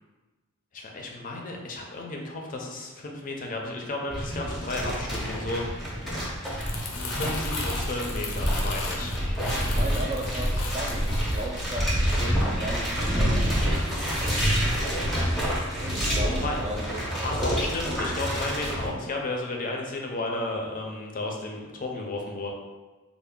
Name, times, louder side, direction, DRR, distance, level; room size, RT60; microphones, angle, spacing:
voice 1, 0.7-6.4 6.9-9.2 16.3-16.6 17.2-22.5, left 2 dB, 40° left, 1 dB, 0.4 m, -33 dB
sound 1, 4.1-18.9, equal, ahead, 0.6 m, -27 dB
Crumpling crinkling, 6.3-12.7 13.0-13.3, left 2 dB, 90° left, 0.5 m, -36 dB
voice 2, 9.5-14.4 15.8-17.8, right 1 dB, 30° right, 1 dB, 0.3 m, -37 dB
sound 2, 15.7-17.3, left 1 dB, 80° right, 0.6 m, -42 dB
3.3 x 2.0 x 3.6 m, 1.3 s
head